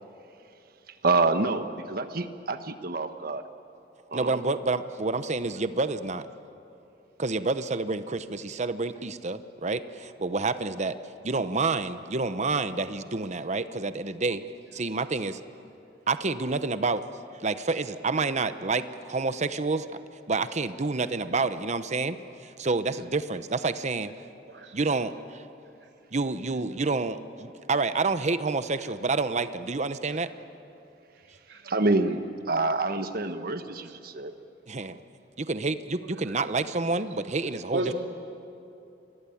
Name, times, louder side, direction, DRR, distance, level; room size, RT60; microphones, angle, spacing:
voice 1, 0.9-3.4 4.1-4.4 31.6-34.3, right 3 dB, 55° right, 8 dB, 1.4 m, -27 dB
voice 2, 4.1-6.3 7.2-11.0 11.2-14.4 14.7-15.4 16.1-17.0 17.4-19.9 20.3-22.2 22.4-24.1 24.7-25.4 26.1-30.3 34.7-35.0 35.4-37.8, right 3 dB, 40° right, 12 dB, 0.9 m, -28 dB
voice 3, 24.5-24.8 25.8-25.9 30.1-30.2 31.5-31.7 33.8-33.9 36.2-36.4 37.7-37.9, right 2 dB, 80° right, 3 dB, 2.8 m, -34 dB
28.5 x 22.0 x 8.6 m, 2.7 s
head